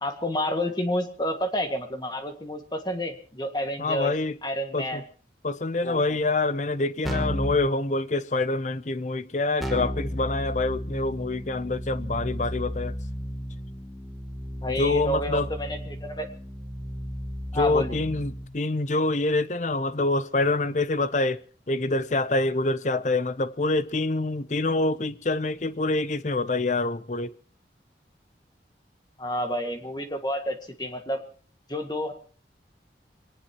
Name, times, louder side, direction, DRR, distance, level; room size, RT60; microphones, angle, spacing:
voice 1, 0.0-4.1 4.4-5.0 5.8-6.2 14.6-16.3 17.5-18.0 29.2-31.2 31.7-32.1, equal, 25° left, 1.8 m, -30 dB
voice 2, 3.8-4.4 4.7-5.0 5.4-12.9 14.8-15.5 17.5-21.4 21.7-27.3, left 2 dB, 40° left, 0.7 m, -26 dB
Keyboard (musical), 7.1-7.6 9.6-18.5, equal, ahead, 2.6 m, -34 dB
23.5 x 18.5 x 3.0 m
head